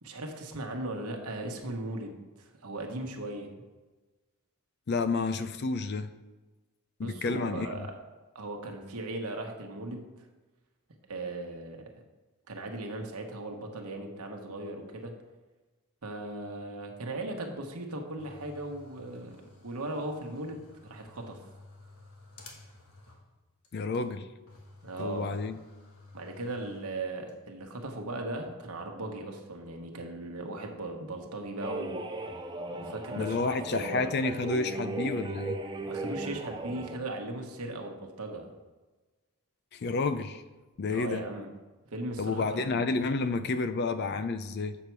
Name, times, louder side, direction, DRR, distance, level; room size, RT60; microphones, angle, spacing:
voice 1, 0.0-3.5 7.0-7.9 8.3-10.2 11.1-11.9 12.5-15.1 16.0-19.4 19.6-21.4 24.8-25.4 26.1-32.0 32.7-34.1 35.9-38.5 40.9-41.5 41.9-42.9, right 2 dB, 80° right, 1.2 m, -38 dB
voice 2, 4.9-6.1 7.0-7.8 23.7-24.3 25.0-25.6 33.2-35.6 39.7-40.4 40.8-41.3 42.2-44.8, left 3 dB, 50° left, 0.4 m, -30 dB
sound 1, 18.2-23.4 23.6-23.7 23.9-24.0 24.5-27.3, left 2 dB, 70° left, 1.3 m, -53 dB
sound 2, 31.6-37.0, right 2 dB, 20° right, 0.5 m, -37 dB
7.1 x 6.7 x 4.6 m
head